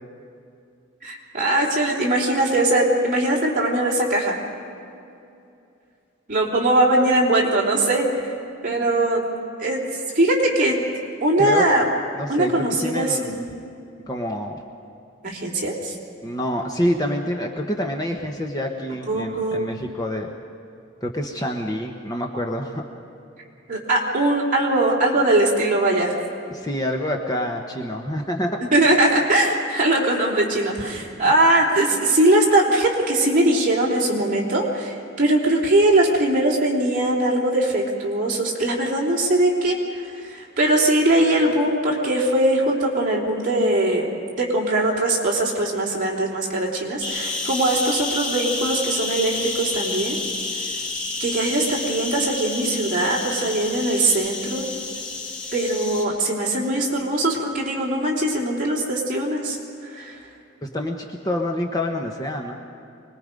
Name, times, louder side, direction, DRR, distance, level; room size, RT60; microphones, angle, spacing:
voice 1, 1.0-4.4 6.3-8.3 8.6-9.2 9.6-10.8 11.2-11.8 12.3-13.4 15.2-16.0 19.1-19.7 23.7-26.2 28.7-50.2 51.2-54.7 55.5-59.6 59.8-60.2, right 1 dB, 40° right, -3 dB, 3.4 m, -21 dB
voice 2, 12.1-13.5 14.1-14.6 16.2-20.3 21.0-22.8 26.5-28.6 60.6-62.5, equal, 20° left, 2 dB, 1.1 m, -27 dB
sound 1, 47.0-56.0, left 3 dB, 65° left, 3.9 m, -29 dB
25.0 x 20.5 x 5.3 m, 2.6 s
head